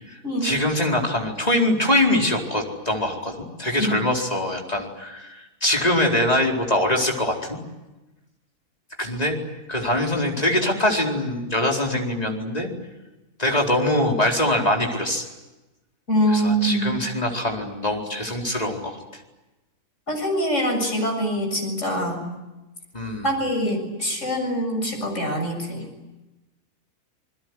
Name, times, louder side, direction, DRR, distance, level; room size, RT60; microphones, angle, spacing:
voice 1, 0.1-7.6 9.0-9.4 9.7-12.7 13.4-15.3 16.3-19.0 22.9-23.3, left 1 dB, 25° left, 1 dB, 4.5 m, -23 dB
voice 2, 16.1-17.0 20.1-22.3 23.2-25.8, equal, 50° left, 2 dB, 7.5 m, -24 dB
28.0 x 21.5 x 9.7 m, 1.1 s
omnidirectional pair, 1.6 m